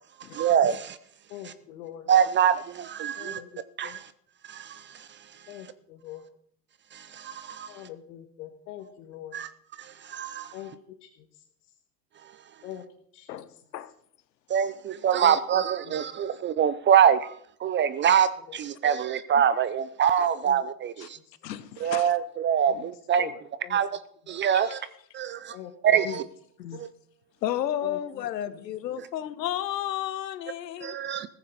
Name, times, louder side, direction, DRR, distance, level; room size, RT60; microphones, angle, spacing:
voice 1, 0.3-1.0 2.1-3.4 3.8-4.0 4.5-4.8 6.9-7.7 9.3-9.5 10.1-10.5 14.5-17.3 17.6-21.2 21.8-23.3 23.7-23.9 24.3-24.8 25.1-25.5 25.8-26.2 26.8-26.9 30.8-31.3, right 8 dB, 25° right, 0.5 m, -24 dB
voice 2, 1.3-2.1 3.2-4.0 5.5-6.2 7.7-9.4 10.5-11.4 12.6-12.8 13.1-13.6 15.1-16.0 18.0-18.2 18.5-18.6 20.4-20.6 21.0-21.2 22.6-22.9 23.2-23.8 25.5-25.7 26.7-26.8 27.8-28.0 28.5-28.6, left 11 dB, 65° left, 1.7 m, -43 dB
voice 3, 21.4-22.2 24.5-24.7 26.0-26.2 26.6-26.8 27.4-31.0, left 11 dB, 80° left, 1.2 m, -32 dB
15.0 x 14.5 x 4.2 m
hypercardioid pair, 95°, 49 cm